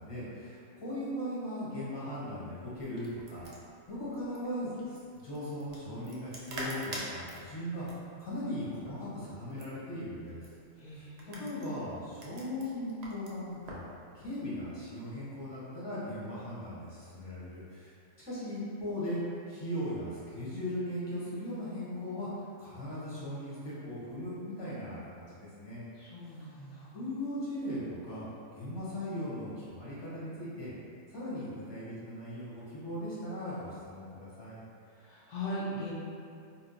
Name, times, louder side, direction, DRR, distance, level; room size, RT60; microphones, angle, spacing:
voice 1, 0.0-3.5 3.9-10.4 10.8-13.8 14.1-19.2 19.5-25.8 26.9-28.3 28.5-30.7 31.1-34.6, left 1 dB, 25° left, -9 dB, 0.7 m, -38 dB
sound 1, 2.8-13.9, right 1 dB, 70° right, 0.3 m, -46 dB
voice 2, 10.8-11.9 26.0-27.0 35.0-35.9, left 1 dB, 75° left, -7 dB, 0.4 m, -40 dB
2.7 x 2.0 x 3.8 m, 2.4 s
omnidirectional pair, 1.3 m